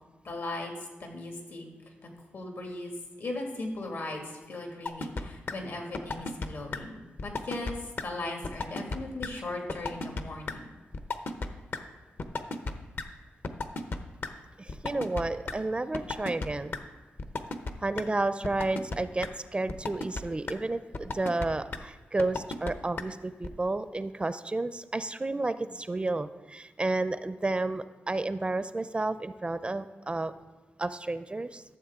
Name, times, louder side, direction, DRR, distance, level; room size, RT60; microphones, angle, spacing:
voice 1, 0.2-0.7 1.0-1.7 2.0-2.9 3.2-7.8 8.0-10.7, left 2 dB, 75° left, 2 dB, 2.1 m, -38 dB
sound 1, 4.9-5.2 5.5-5.6 5.9-6.5 6.7-6.8 7.2-7.7 8.0-8.1 8.4-9.0 9.2-9.3 9.7-10.2 10.5-10.6 10.9-11.5 11.7-11.8 12.2-12.7 13.0-13.1 13.4-14.3 14.7-15.5 15.9-16.5 16.7-16.8 17.2-17.7 18.0-18.1 18.4-19.0 19.2-19.3 19.7-20.2 20.5-20.6 20.9-21.5 21.7-21.8 22.2-22.7 23.0-23.1 23.4-23.5, left 3 dB, 55° left, 0.8 m, -33 dB
voice 2, 14.6-16.7 17.8-30.3 30.8-31.6, right 2 dB, 25° right, 13 dB, 0.4 m, -31 dB
12.5 x 7.1 x 3.6 m, 1.3 s
cardioid pair, 65°, 4 cm